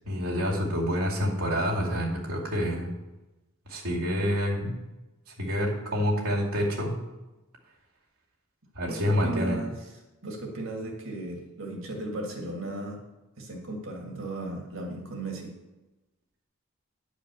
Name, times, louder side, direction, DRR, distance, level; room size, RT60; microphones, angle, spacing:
voice 1, 0.0-2.9 3.7-4.8 5.4-7.0 8.7-9.6, equal, 85° right, -3 dB, 2.5 m, -27 dB
voice 2, 8.9-9.8 10.2-13.0 13.4-15.5, right 2 dB, 60° right, 1 dB, 2.1 m, -35 dB
10.0 x 5.0 x 6.9 m, 1.1 s
head